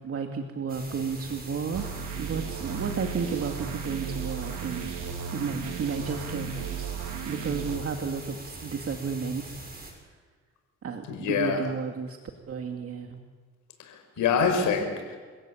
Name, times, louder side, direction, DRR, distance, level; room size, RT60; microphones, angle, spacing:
voice 1, 0.0-1.9 2.2-5.0 5.3-6.9 7.3-9.6 10.8-12.2 12.5-13.2, right 5 dB, 50° right, 3 dB, 2.5 m, -32 dB
sound 1, 0.7-9.9, right 2 dB, 30° right, 8.0 m, -43 dB
sound 2, 1.7-7.8, right 7 dB, 80° right, 3.4 m, -35 dB
voice 2, 11.1-11.6 13.8-15.2, left 6 dB, 90° left, 5 dB, 5.9 m, -26 dB
29.0 x 17.0 x 8.8 m, 1.5 s
cardioid pair, 90°, 30 cm